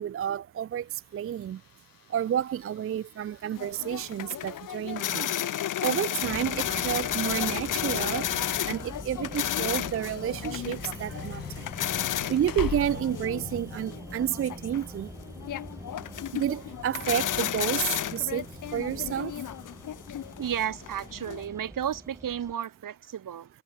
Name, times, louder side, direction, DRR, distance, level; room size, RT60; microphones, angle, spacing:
voice 1, 0.0-1.6 2.1-8.3 8.7-11.7 12.3-15.1 16.3-19.4, right 10 dB, 45° right, 0.4 m, -30 dB
sound 1, 0.7-13.5, left 9 dB, 80° left, 5.5 m, -45 dB
sound 2, 3.6-21.4, left 11 dB, 65° left, 0.7 m, -33 dB
sound 3, 6.2-22.5, right 1 dB, 10° right, 1.5 m, -44 dB
voice 2, 20.4-23.5, right 9 dB, 70° right, 1.6 m, -33 dB
supercardioid pair, 45°, 33 cm